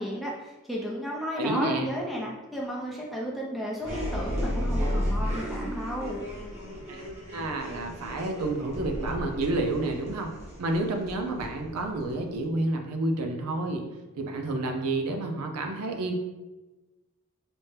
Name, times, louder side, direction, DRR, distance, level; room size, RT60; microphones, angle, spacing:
voice 1, 0.0-6.2, equal, ahead, -4 dB, 0.6 m, -33 dB
voice 2, 1.4-1.9 6.9-7.0 7.3-10.3 10.6-13.8 14.1-16.1, right 2 dB, 85° right, 3 dB, 0.5 m, -29 dB
sound 1, 3.8-12.4, equal, 30° right, 0.9 m, -33 dB
4.2 x 2.1 x 3.2 m, 1.1 s
head